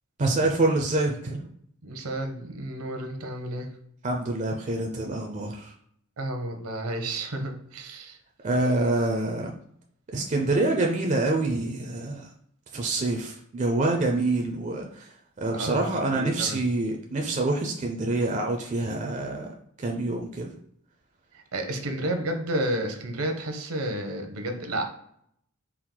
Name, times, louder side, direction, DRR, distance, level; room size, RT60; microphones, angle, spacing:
voice 1, 0.2-1.5 4.0-5.7 8.4-9.5 10.1-12.3 12.7-20.5, right 2 dB, 30° right, 1 dB, 0.4 m, -26 dB
voice 2, 1.8-3.7 6.2-8.2 15.5-16.7 21.3-24.8, right 1 dB, 75° right, 5 dB, 0.7 m, -31 dB
4.5 x 2.0 x 3.7 m, 0.67 s
head